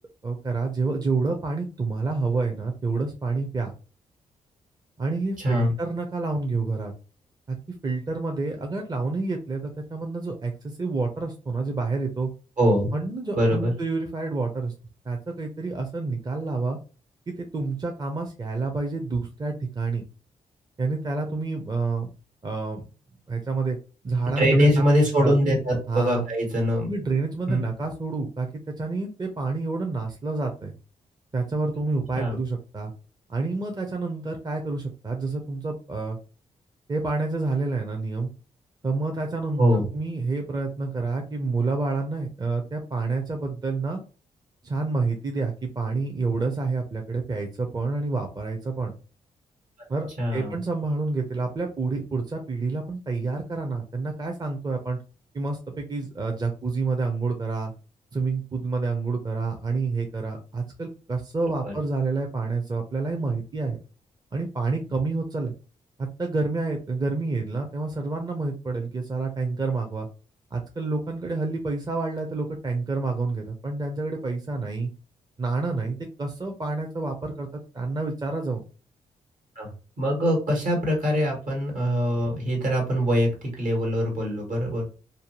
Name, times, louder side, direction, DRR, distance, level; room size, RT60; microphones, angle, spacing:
voice 1, 0.2-3.7 5.0-6.9 7.5-7.6 7.8-12.3 12.9-14.7 15.0-16.8 17.3-20.0 20.8-22.1 22.4-22.8 23.3-23.8 24.0-24.7 25.2-25.4 25.9-26.2 26.9-28.5 28.8-30.8 31.3-32.9 33.3-36.2 36.9-38.3 38.8-44.0 44.6-48.9 49.9-55.0 55.3-57.7 58.1-63.8 64.3-65.5 66.0-70.1 70.5-74.9 75.4-78.6, right 3 dB, 30° right, 3 dB, 0.6 m, -28 dB
voice 2, 12.6-12.9 13.3-13.7 24.4-26.9 27.5-27.6 32.1-32.4 39.6-39.9 50.2-50.5 61.6-61.7 79.5-79.7 80.0-85.0, equal, 65° right, 0 dB, 1.5 m, -23 dB
2.6 x 2.2 x 2.9 m, 0.35 s
supercardioid pair, 50°, 14 cm